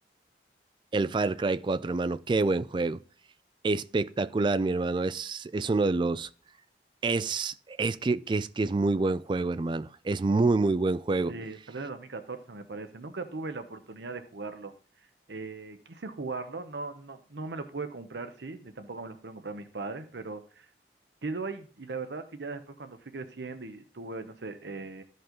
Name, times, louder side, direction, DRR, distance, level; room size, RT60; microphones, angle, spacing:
voice 1, 0.9-3.0 3.6-6.3 7.0-11.3, right 3 dB, 25° right, 0.3 m, -27 dB
voice 2, 11.3-14.7 15.3-20.7 21.2-25.0, right 3 dB, 80° right, 0.8 m, -39 dB
13.0 x 5.5 x 3.8 m
head